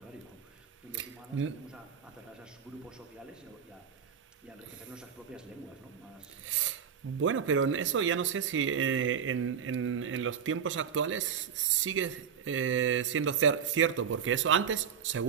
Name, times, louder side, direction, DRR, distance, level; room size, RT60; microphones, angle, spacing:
voice 1, 0.0-6.4, equal, 5° right, 1.2 m, -49 dB
voice 2, 6.4-15.2, right 7 dB, 90° right, 0.4 m, -29 dB
15.0 x 7.5 x 7.9 m
head